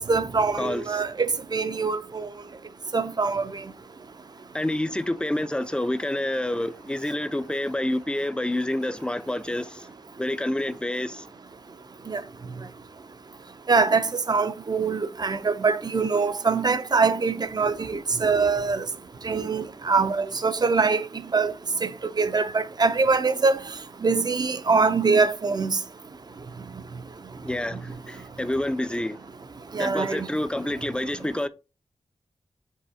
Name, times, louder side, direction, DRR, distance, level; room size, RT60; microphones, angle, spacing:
voice 1, 0.0-2.3 2.9-3.5 12.1-12.2 13.7-18.9 19.2-21.0 21.3-21.5 21.8-21.9 22.2-23.6 24.0-25.8 29.7-30.3, right 4 dB, 40° right, 0.5 m, -23 dB
voice 2, 0.5-1.0 4.5-9.9 10.2-11.3 27.4-29.2 29.8-31.5, left 1 dB, 10° left, 0.4 m, -28 dB
5.5 x 3.3 x 2.7 m
cardioid pair, 60°, 11 cm